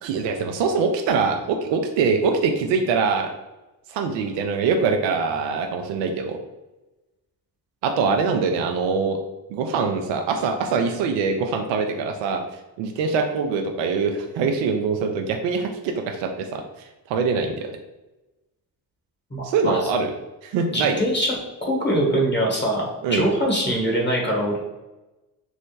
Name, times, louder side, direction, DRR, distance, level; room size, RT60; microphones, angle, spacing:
voice 1, 0.0-3.3 3.9-6.4 7.8-9.2 9.5-12.4 12.8-16.6 17.1-17.7 19.4-20.1 20.4-21.0 23.0-23.3, right 5 dB, 65° right, 4 dB, 0.5 m, -23 dB
voice 2, 19.3-19.8 20.7-21.4 21.6-24.6, right 1 dB, 25° left, -2 dB, 1.4 m, -23 dB
3.5 x 2.0 x 3.2 m, 1.1 s
hypercardioid pair, 40°, 47 cm